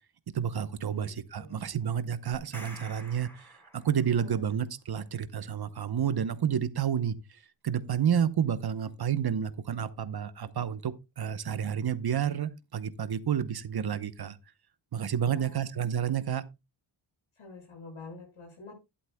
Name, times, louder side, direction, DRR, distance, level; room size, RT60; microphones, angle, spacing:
voice 1, 0.3-14.4 14.9-16.4, right 8 dB, 50° right, 0.9 m, -30 dB
sound 1, 2.3-4.3, right 1 dB, 5° left, 3.2 m, -49 dB
voice 2, 15.2-15.6 17.4-18.7, left 3 dB, 80° left, 6.4 m, -47 dB
11.5 x 11.5 x 2.2 m
cardioid pair, 85°, 47 cm